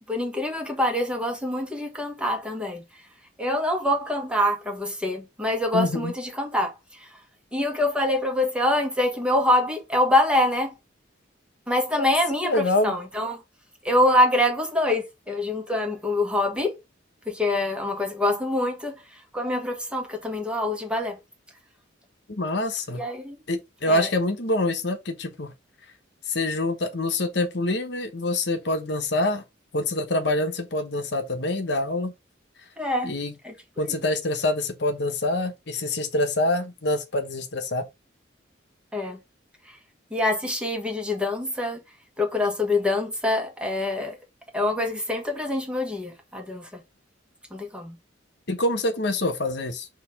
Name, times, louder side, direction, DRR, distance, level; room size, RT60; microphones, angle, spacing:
voice 1, 0.1-2.8 3.4-7.1 7.5-10.7 11.7-13.4 13.8-16.8 17.3-21.2 22.9-23.4 23.9-24.1 32.8-33.1 33.4-34.0 38.9-39.2 39.7-39.8 40.1-41.8 42.2-44.2 44.5-46.8 47.5-48.0, left 1 dB, 5° right, 1.5 m, -25 dB
voice 2, 5.7-6.1 12.4-13.0 22.3-23.0 23.5-25.5 26.3-29.4 29.7-32.1 33.0-33.3 33.8-37.9 48.5-49.9, left 2 dB, 60° left, 1.1 m, -26 dB
6.7 x 3.0 x 4.8 m
head